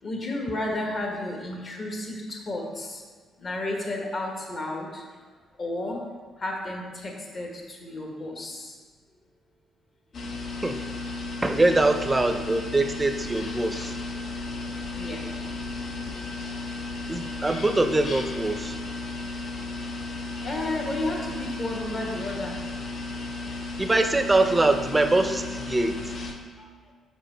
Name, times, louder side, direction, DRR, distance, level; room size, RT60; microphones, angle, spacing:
voice 1, 0.0-3.0 3.4-5.0 5.6-6.0 6.4-8.8 14.8-15.4 15.6-16.1 16.5-16.6 17.2-17.3 20.4-22.6 26.6-26.7, left 2 dB, 45° left, 0 dB, 1.4 m, -32 dB
sound 1, 10.1-26.3, left 3 dB, 60° left, 0.7 m, -34 dB
voice 2, 11.4-14.0 17.1-18.8 23.8-26.0, right 2 dB, 15° right, 7 dB, 0.5 m, -23 dB
5.2 x 4.6 x 4.4 m, 1.5 s
cardioid pair, 90°, 0 cm